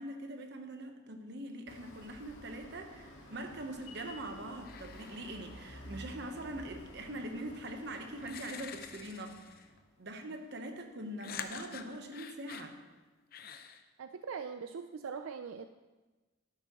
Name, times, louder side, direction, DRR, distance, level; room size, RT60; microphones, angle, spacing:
voice 1, 0.0-9.6 10.0-12.8, right 1 dB, 55° right, 5 dB, 1.1 m, -43 dB
sound 1, 1.7-10.0, left 1 dB, 70° left, 1.8 m, -52 dB
sound 2, 3.8-4.2 4.6-6.0 7.5-7.6 8.2-9.8 11.2-12.7 13.3-13.8, left 7 dB, 45° left, 0.6 m, -47 dB
voice 2, 14.0-15.7, right 6 dB, 85° right, 9 dB, 0.4 m, -41 dB
12.5 x 10.5 x 3.0 m, 1.2 s
head